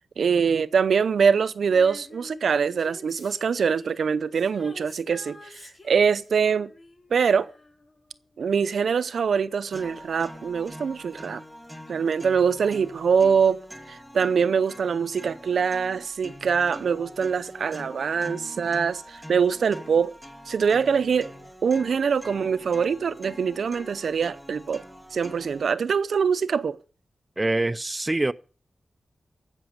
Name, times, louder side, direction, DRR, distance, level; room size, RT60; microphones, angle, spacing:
voice 1, 0.2-6.7 7.1-7.5 8.4-11.4 11.9-13.6 13.9-20.1 20.5-21.3 21.6-24.8 25.1-26.8, right 6 dB, 85° right, 0.6 m, -24 dB
Female singing, 1.7-8.3 8.6-8.7, left 2 dB, 40° left, 4.8 m, -48 dB
sound 1, 9.7-25.7, equal, ahead, 2.2 m, -44 dB
voice 2, 27.4-28.3, right 2 dB, 20° right, 0.5 m, -24 dB
15.0 x 6.2 x 7.8 m
wide cardioid pair, 85°, 0 cm